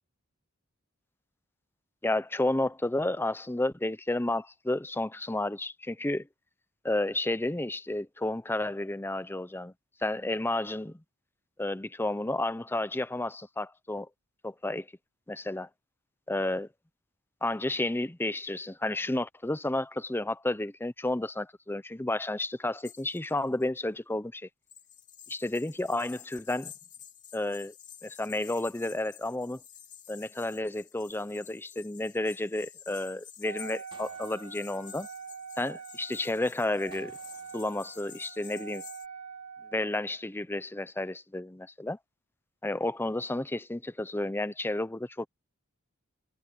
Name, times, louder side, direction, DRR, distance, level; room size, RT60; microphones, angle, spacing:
voice 1, 2.0-6.3 6.8-9.7 10.0-11.0 11.6-14.1 14.4-14.9 15.3-15.7 16.3-16.7 17.4-24.5 25.3-26.7 27.3-27.7 28.0-29.6 30.1-35.1 35.6-37.1 37.5-38.8 39.7-42.0 42.6-45.3, left 1 dB, 10° left, 0.7 m, -31 dB
sound 1, 22.8-23.6 24.7-39.1, left 9 dB, 35° left, 3.3 m, -51 dB
Wind instrument woodwind instrument, 33.4-39.9, right 6 dB, 75° right, 4.5 m, -45 dB
sound 2, 33.9-36.0 36.9-39.0, right 3 dB, 25° right, 3.3 m, -61 dB
head